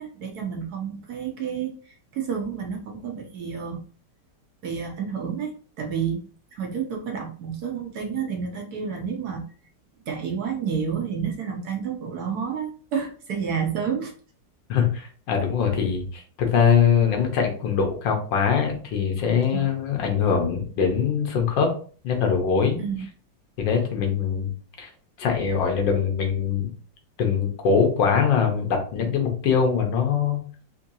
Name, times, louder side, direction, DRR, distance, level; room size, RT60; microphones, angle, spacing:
voice 1, 0.0-1.7 2.1-3.8 4.6-6.2 6.5-9.4 10.1-14.1 19.5-19.6 22.8-23.1, right 7 dB, 65° right, 3 dB, 1.1 m, -30 dB
voice 2, 14.7-21.7 22.0-22.8 23.6-24.5 24.8-24.9 25.2-26.7 27.2-30.4, left 6 dB, 80° left, 3 dB, 1.6 m, -22 dB
4.4 x 2.6 x 2.7 m, 0.41 s
omnidirectional pair, 2.0 m